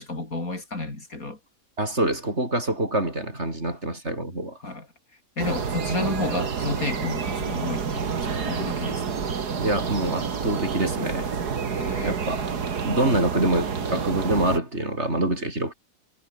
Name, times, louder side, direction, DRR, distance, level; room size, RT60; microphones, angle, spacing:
voice 1, 0.0-1.4 4.6-4.9 5.4-9.1 11.7-12.2, left 2 dB, 60° left, 5.3 m, -31 dB
voice 2, 1.8-4.6 9.6-11.3 12.0-12.4 12.8-15.7, right 1 dB, 40° right, 6.9 m, -25 dB
sound 1, 5.4-14.6, right 6 dB, 80° right, 2.6 m, -29 dB
omnidirectional pair, 1.7 m